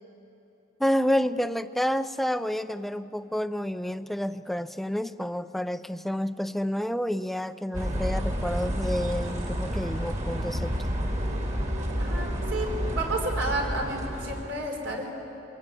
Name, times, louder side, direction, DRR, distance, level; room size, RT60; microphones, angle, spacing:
voice 1, 0.8-11.0, equal, ahead, 12 dB, 0.5 m, -29 dB
sound 1, 7.7-14.4, equal, 40° right, 2.6 m, -30 dB
voice 2, 12.0-12.7 12.9-15.1, right 2 dB, 70° right, 1 dB, 4.3 m, -31 dB
24.0 x 17.5 x 9.3 m, 3.0 s
head